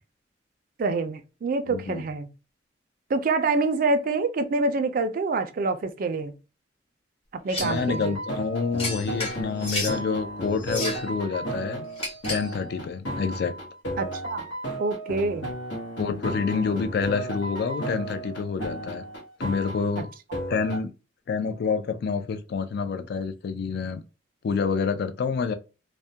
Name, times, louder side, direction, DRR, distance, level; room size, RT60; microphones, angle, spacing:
voice 1, 0.8-2.3 3.1-6.3 7.4-8.2 14.0-14.4 14.8-15.5 20.0-20.1, right 3 dB, 50° right, 0.4 m, -26 dB
voice 2, 1.7-2.0 7.6-11.9 12.3-13.5 16.0-19.0 19.4-20.1 20.5-20.9 21.3-24.0 24.4-25.5, left 5 dB, 55° left, 0.3 m, -28 dB
sound 1, 7.5-7.8 8.8-10.0 10.6-11.1 12.0-12.5, left 1 dB, 30° left, 0.9 m, -32 dB
sound 2, 7.6-20.8, right 1 dB, 75° left, 0.9 m, -34 dB
2.2 x 2.1 x 2.6 m
head